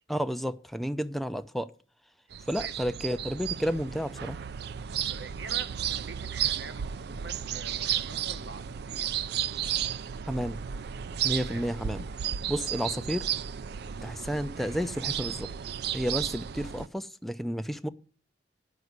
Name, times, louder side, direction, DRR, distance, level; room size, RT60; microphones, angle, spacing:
voice 1, 0.1-1.7 2.5-4.4 10.3-10.6 11.2-12.0 12.5-13.3 14.0-15.5 15.9-17.9, equal, ahead, 0.4 m, -31 dB
sound 1, 2.3-16.9, right 9 dB, 65° right, 0.4 m, -33 dB
voice 2, 2.3-2.7 4.9-9.3 11.4-11.6 12.7-12.9, right 4 dB, 90° right, 1.2 m, -45 dB
9.5 x 6.1 x 8.0 m
head